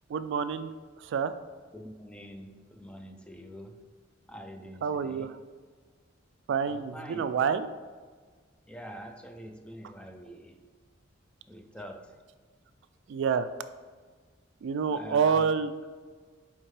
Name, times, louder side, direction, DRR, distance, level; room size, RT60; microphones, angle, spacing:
voice 1, 0.1-0.7 1.0-1.3 4.8-5.3 6.5-7.7 13.1-13.5 14.6-15.7, right 6 dB, 65° right, 12 dB, 0.3 m, -27 dB
voice 2, 1.7-3.8 4.3-5.3 6.6-7.2 8.7-10.6 11.5-12.2 14.9-15.5, equal, 5° left, 5 dB, 0.4 m, -45 dB
8.9 x 3.6 x 3.2 m, 1.5 s
head